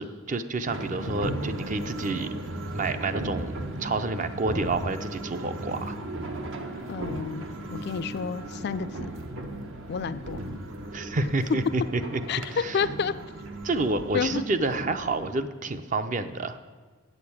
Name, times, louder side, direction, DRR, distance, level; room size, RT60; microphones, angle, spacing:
voice 1, 0.0-2.3 2.7-6.0 10.9-12.2 12.6-12.7 13.6-16.6, right 3 dB, 35° right, 10 dB, 0.5 m, -29 dB
sound 1, 0.7-15.3, right 1 dB, 70° right, 1.1 m, -36 dB
voice 2, 6.9-9.1 9.9-10.4 12.3-13.1 14.1-14.5, left 6 dB, 50° left, 13 dB, 0.3 m, -30 dB
8.6 x 6.7 x 8.5 m, 1.4 s
head